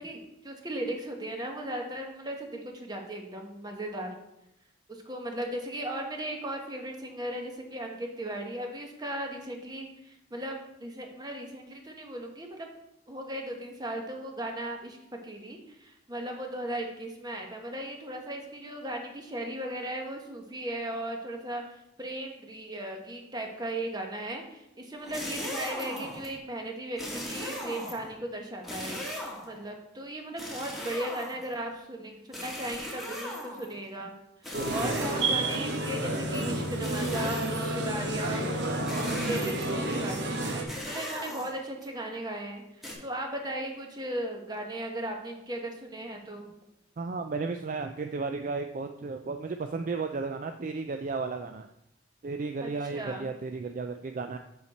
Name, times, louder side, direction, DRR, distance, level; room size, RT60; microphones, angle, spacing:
voice 1, 0.0-4.2 4.9-12.7 13.1-15.0 15.2-34.1 34.7-38.5 38.9-42.6 43.0-46.5 52.6-53.3, right 1 dB, 20° right, 2 dB, 1.1 m, -37 dB
sound 1, 25.0-26.3 27.0-28.1 28.6-29.6 30.4-31.6 32.3-33.8 34.4-35.5 36.8-37.7 38.9-39.8 40.7-41.8 42.8-42.9, left 1 dB, ahead, 1.7 m, -38 dB
sound 2, 34.5-40.6, right 2 dB, 60° right, 1.1 m, -30 dB
voice 2, 34.6-35.0 47.0-51.7 52.2-54.4, right 4 dB, 45° right, 6 dB, 0.3 m, -34 dB
7.1 x 6.5 x 4.2 m, 0.83 s
head